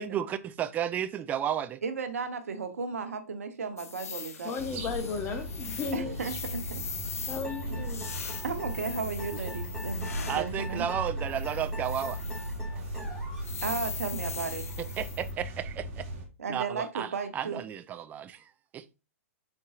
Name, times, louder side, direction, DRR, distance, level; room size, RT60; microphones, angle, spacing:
voice 1, 0.0-1.8 10.3-12.2 14.8-16.0 16.5-18.4 18.7-18.8, right 10 dB, 20° right, 0.3 m, -33 dB
voice 2, 1.8-4.5 5.9-6.8 7.7-7.8 8.4-10.8 13.6-14.6 16.4-17.6, right 5 dB, 75° right, 0.8 m, -34 dB
sound 1, 3.8-10.5 11.3-12.6 12.9-13.0 13.4-15.3, left 6 dB, 75° left, 0.6 m, -41 dB
voice 3, 4.4-6.2 7.3-8.1 12.0-12.1, left 5 dB, 25° left, 0.9 m, -35 dB
sound 2, 4.6-16.3, right 1 dB, 50° right, 1.4 m, -37 dB
sound 3, 7.4-13.5, left 2 dB, 5° left, 2.3 m, -45 dB
4.5 x 3.9 x 2.4 m
hypercardioid pair, 120°, 8 cm